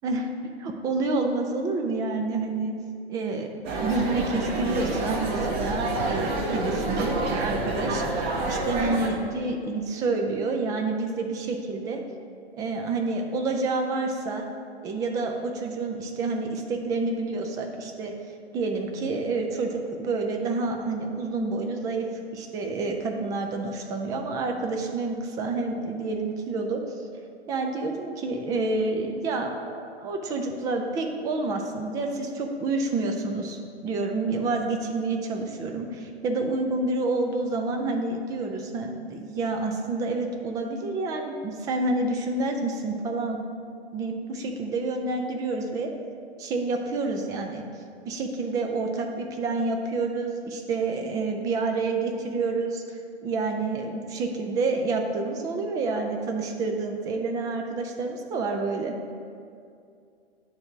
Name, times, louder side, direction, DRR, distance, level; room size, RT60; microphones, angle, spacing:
voice 1, 0.6-2.7 3.1-3.5 3.8-8.0 8.5-12.0 12.6-14.5 14.8-18.1 18.5-22.1 22.3-26.8 27.5-43.4 43.9-45.9 46.4-47.6 48.1-58.9, right 3 dB, 10° right, 3 dB, 0.3 m, -28 dB
sound 1, 3.6-9.1, right 2 dB, 30° right, 0.9 m, -28 dB
9.4 x 3.4 x 6.0 m, 2.4 s
hypercardioid pair, 115°, 32 cm